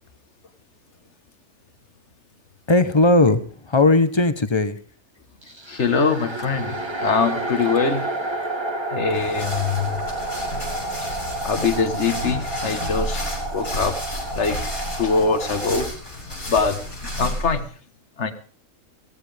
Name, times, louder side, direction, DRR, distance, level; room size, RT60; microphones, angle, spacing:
voice 1, 2.7-4.8, left 2 dB, 25° left, 11 dB, 0.9 m, -18 dB
sound 1, 5.4-15.9, right 2 dB, 20° right, 1.3 m, -30 dB
voice 2, 5.7-8.1 8.9-10.0 11.0-11.1 11.4-13.2 13.5-14.0 14.3-14.6 14.9-15.9 16.5-16.8 17.0-17.7 18.2-18.3, left 5 dB, 55° left, 9 dB, 1.7 m, -23 dB
sound 2, 9.1-17.6, left 1 dB, 75° left, 6.7 m, -31 dB
17.0 x 16.0 x 3.5 m, 0.43 s
omnidirectional pair, 1.5 m